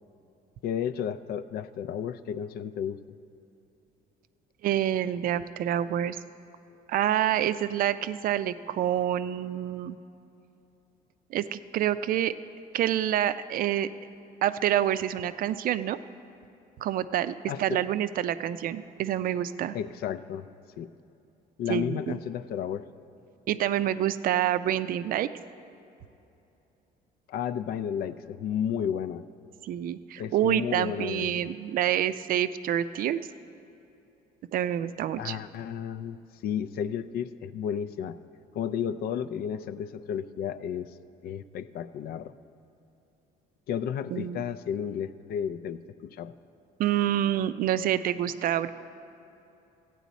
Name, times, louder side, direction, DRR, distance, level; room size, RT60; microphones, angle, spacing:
voice 1, 0.6-3.0 17.5-17.8 19.7-20.5 20.8-20.9 21.6-22.8 27.3-29.2 30.2-31.5 35.2-38.2 38.5-40.9 41.2-42.3 43.7-46.3, left 8 dB, 65° left, 14 dB, 0.4 m, -32 dB
voice 2, 4.6-6.2 6.9-10.0 11.3-12.3 12.7-13.9 14.4-16.0 16.8-17.3 17.6-19.8 21.7-22.2 23.5-25.3 29.6-33.2 34.5-35.4 44.1-44.4 46.8-48.7, right 11 dB, 55° right, 14 dB, 0.4 m, -27 dB
14.5 x 9.2 x 4.1 m, 2.8 s
cardioid pair, 110°, 17 cm